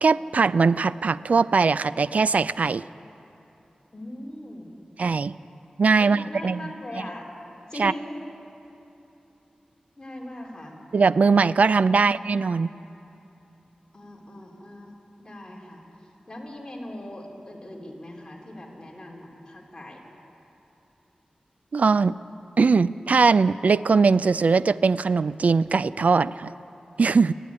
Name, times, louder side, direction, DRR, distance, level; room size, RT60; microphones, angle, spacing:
voice 1, 0.0-2.8 5.0-5.3 5.8-6.7 7.8-7.9 10.9-12.7 21.7-22.2 22.6-26.5 27.0-27.3, right 4 dB, 65° right, 16 dB, 0.4 m, -20 dB
voice 2, 3.9-4.8 6.0-7.3 7.7-8.2 10.0-10.8 11.9-12.1 13.9-14.9 15.2-15.9 16.3-20.0, left 1 dB, 25° left, -2 dB, 3.8 m, -40 dB
28.5 x 10.0 x 9.8 m, 3.0 s
wide cardioid pair, 105°, 3 cm